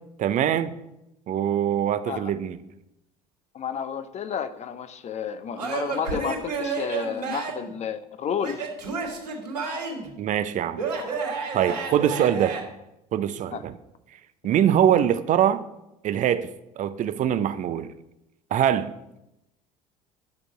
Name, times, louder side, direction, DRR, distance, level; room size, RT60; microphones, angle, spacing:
voice 1, 0.2-0.7 1.3-2.6 10.2-10.8 11.5-12.6 13.1-13.7 14.4-15.6 16.0-16.5 16.8-17.9 18.5-18.9, right 10 dB, 40° right, 12 dB, 0.6 m, -23 dB
voice 2, 3.5-8.6 9.0-9.1 11.7-11.8 13.5-13.6, left 7 dB, 35° left, 12 dB, 0.8 m, -31 dB
Male speech man speaking / Yell / Laughter, 5.6-7.7 8.4-10.1 10.8-12.6, right 5 dB, 80° right, 2.3 m, -30 dB
10.5 x 6.2 x 6.0 m, 0.89 s
figure-of-eight pair, 65°, 20 cm